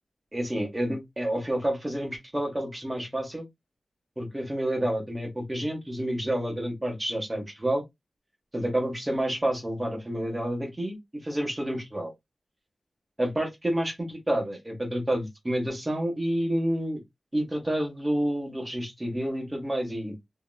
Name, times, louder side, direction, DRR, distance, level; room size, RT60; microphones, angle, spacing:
voice 1, 0.3-3.4 4.2-7.8 8.5-12.1 13.2-17.0 17.3-20.3, right 1 dB, 20° right, 1.4 m, -29 dB
2.9 x 2.8 x 2.3 m
wide cardioid pair, 100°, 0 cm